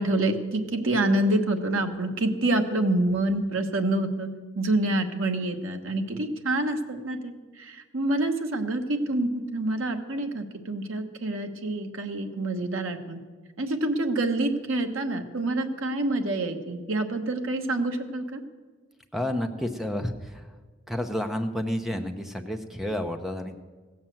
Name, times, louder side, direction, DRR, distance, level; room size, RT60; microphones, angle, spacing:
voice 1, 0.0-4.3 4.6-7.3 7.6-13.2 13.6-18.4, right 2 dB, 70° right, 5 dB, 1.1 m, -27 dB
voice 2, 19.1-20.5 20.9-23.6, left 1 dB, ahead, 5 dB, 0.8 m, -30 dB
16.0 x 7.3 x 7.7 m, 1.4 s
head